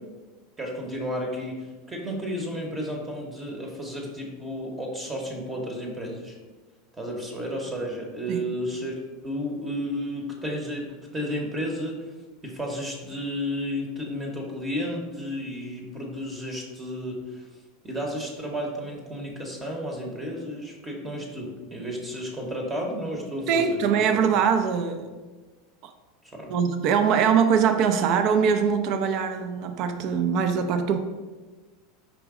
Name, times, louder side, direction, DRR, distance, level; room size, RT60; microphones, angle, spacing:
voice 1, 0.6-6.4 6.9-8.9 9.2-12.1 12.4-17.5 17.8-24.3 26.3-26.5, equal, 20° right, 1 dB, 0.8 m, -32 dB
voice 2, 23.5-25.1 25.8-25.9 26.5-31.0, right 7 dB, 55° right, 8 dB, 0.4 m, -22 dB
4.8 x 3.0 x 3.6 m, 1.3 s
hypercardioid pair, 110°, 0 cm